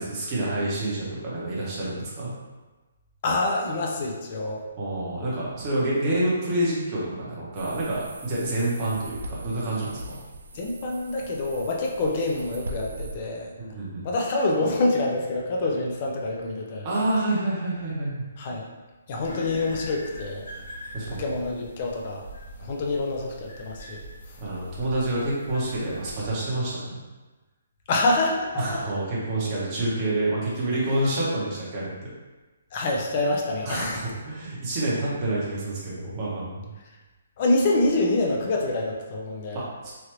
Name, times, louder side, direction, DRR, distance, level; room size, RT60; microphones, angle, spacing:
voice 1, 0.0-2.3 4.8-10.2 13.6-14.0 16.8-18.2 20.9-21.2 24.4-26.9 28.5-31.9 33.6-36.7 39.5-39.9, right 1 dB, 20° right, -7 dB, 0.7 m, -28 dB
voice 2, 3.2-4.6 6.0-6.2 10.5-13.5 14.0-16.9 18.4-18.7 19.1-20.4 21.1-22.2 22.6-24.0 27.9-28.8 32.7-34.0 37.4-39.6, left 2 dB, 25° left, 0 dB, 0.4 m, -26 dB
sound 1, 7.5-13.2, right 2 dB, 75° right, 0.3 m, -40 dB
sound 2, 19.2-26.3, equal, 80° left, 1.3 m, -42 dB
3.1 x 2.5 x 3.0 m, 1.2 s
hypercardioid pair, 175°, 0 cm